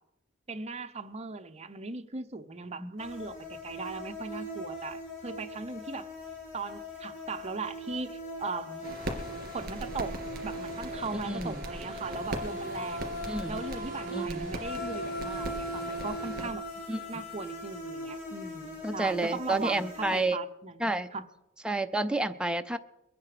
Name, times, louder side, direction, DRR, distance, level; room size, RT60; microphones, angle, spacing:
voice 1, 0.5-6.1 6.5-8.9 9.5-10.2 10.4-13.2 13.5-16.7 17.1-21.2, right 4 dB, 30° right, 0.7 m, -38 dB
sound 1, 3.0-20.2, equal, 65° left, 6.1 m, -40 dB
sound 2, 8.8-16.5, right 1 dB, 50° right, 2.7 m, -40 dB
voice 2, 11.2-11.6 13.3-13.6 14.1-14.5 16.9-17.0 18.8-20.4 20.8-21.1 21.6-22.8, right 2 dB, 5° right, 0.4 m, -30 dB
22.5 x 9.5 x 5.0 m
head